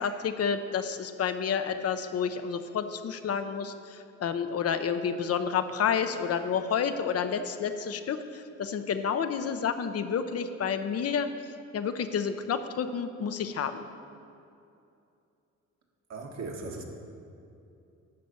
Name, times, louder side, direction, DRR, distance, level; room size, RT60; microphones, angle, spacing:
voice 1, 0.0-11.3 11.7-13.8, left 7 dB, 55° left, 9 dB, 0.7 m, -30 dB
voice 2, 16.1-16.8, right 3 dB, 65° right, 0 dB, 1.7 m, -38 dB
12.0 x 4.2 x 8.1 m, 2.6 s
cardioid pair, 90°, 30 cm